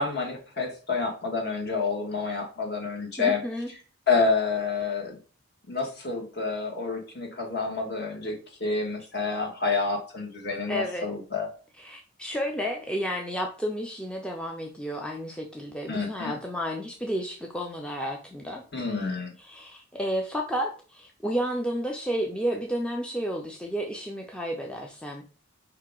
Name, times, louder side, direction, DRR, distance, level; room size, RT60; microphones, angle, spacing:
voice 1, 0.0-3.4 4.1-5.2 5.7-11.5 15.9-16.4 18.7-19.3, left 4 dB, 50° left, 1.3 m, -28 dB
voice 2, 3.2-3.7 10.7-11.1 11.8-18.6 19.0-19.1 19.4-25.2, equal, 5° left, 0.4 m, -31 dB
4.8 x 2.8 x 3.6 m
head